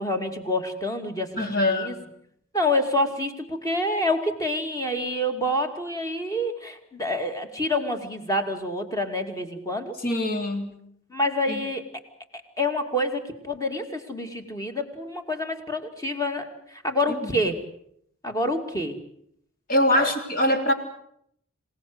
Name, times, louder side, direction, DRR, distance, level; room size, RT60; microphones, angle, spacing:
voice 1, 0.0-1.9 2.5-9.9 11.1-11.9 12.6-17.6 18.2-19.0 20.0-20.1, left 1 dB, 15° left, 5 dB, 2.5 m, -27 dB
voice 2, 1.4-1.9 10.0-10.7 11.5-11.6 17.1-17.3 19.7-20.7, left 1 dB, 40° left, 5 dB, 3.4 m, -23 dB
27.0 x 18.0 x 8.0 m, 0.71 s
head